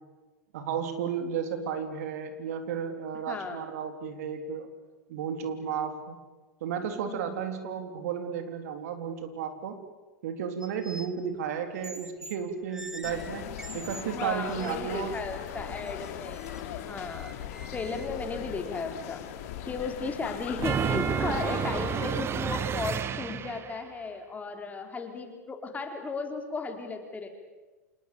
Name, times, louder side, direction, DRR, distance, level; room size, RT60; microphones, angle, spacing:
voice 1, 0.5-4.7 5.1-6.2 6.6-9.8 10.2-15.2, right 7 dB, 65° right, 7 dB, 3.5 m, -33 dB
voice 2, 3.3-3.6 7.1-7.5 14.1-17.4 17.7-19.2 19.7-27.3, left 4 dB, 15° left, 5 dB, 4.0 m, -35 dB
sound 1, 10.6-11.2 11.8-12.4 12.7-14.0 14.5-14.7 15.2-15.3 15.8-18.1, right 2 dB, 5° right, 1.6 m, -45 dB
sound 2, 13.0-22.2, left 10 dB, 60° left, 3.3 m, -39 dB
sound 3, 20.6-23.8, right 8 dB, 30° right, 1.2 m, -30 dB
27.5 x 19.5 x 8.5 m, 1.2 s
hypercardioid pair, 105°, 9 cm